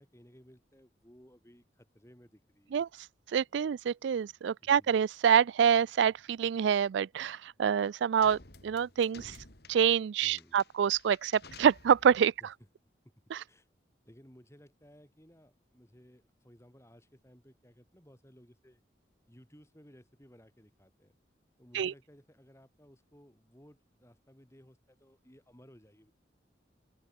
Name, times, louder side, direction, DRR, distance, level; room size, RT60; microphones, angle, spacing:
voice 1, 0.0-2.9 4.6-4.9 10.2-10.6 12.4-12.5 13.0-13.1 13.5-13.7 14.0-18.8 19.3-21.1 21.6-26.1, equal, 15° left, 6.2 m, -58 dB
voice 2, 3.3-9.4 9.7-12.3 13.3-13.4 21.7-21.9, right 8 dB, 75° right, 0.3 m, -26 dB
sound 1, 8.2-12.3, left 3 dB, 55° left, 3.0 m, -53 dB
open air
head